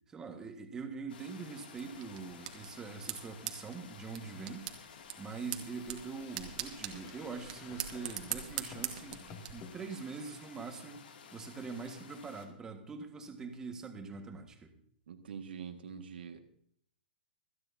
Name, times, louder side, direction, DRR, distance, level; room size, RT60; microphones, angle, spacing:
voice 1, 0.1-4.7 5.2-14.7, right 4 dB, 10° right, 4 dB, 1.6 m, -43 dB
sound 1, 1.1-12.5, left 6 dB, 75° left, 2.5 m, -54 dB
sound 2, 1.8-9.5, right 12 dB, 50° right, 1.8 m, -43 dB
sound 3, 4.9-9.7, left 5 dB, 30° left, 2.4 m, -54 dB
voice 2, 15.1-16.4, right 7 dB, 80° right, 6 dB, 1.8 m, -44 dB
26.0 x 9.8 x 2.8 m, 0.65 s
hypercardioid pair, 160°, 5 cm